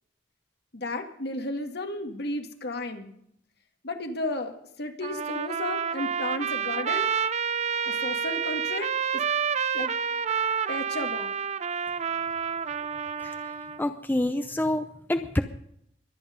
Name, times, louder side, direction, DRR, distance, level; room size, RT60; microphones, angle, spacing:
voice 1, 0.7-3.1 3.8-7.1 7.9-9.2 9.7-9.9 10.7-11.3, left 2 dB, 60° left, 5 dB, 2.0 m, -33 dB
Trumpet, 5.0-13.8, right 7 dB, 35° right, 0.6 m, -29 dB
voice 2, 13.2-13.5 13.8-15.4, left 1 dB, 10° left, 8 dB, 0.7 m, -27 dB
23.0 x 9.1 x 5.2 m, 0.70 s
head